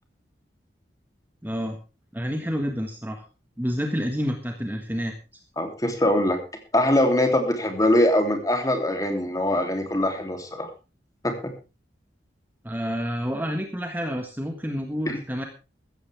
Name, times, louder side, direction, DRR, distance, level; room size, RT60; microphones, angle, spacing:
voice 1, 1.4-1.8 2.1-3.2 3.6-5.1 12.6-15.4, equal, 10° right, 4 dB, 1.6 m, -29 dB
voice 2, 5.6-6.4 6.7-10.7 11.2-11.3 15.1-15.2, left 1 dB, 20° left, 4 dB, 3.2 m, -22 dB
15.0 x 14.5 x 3.6 m, 0.31 s
head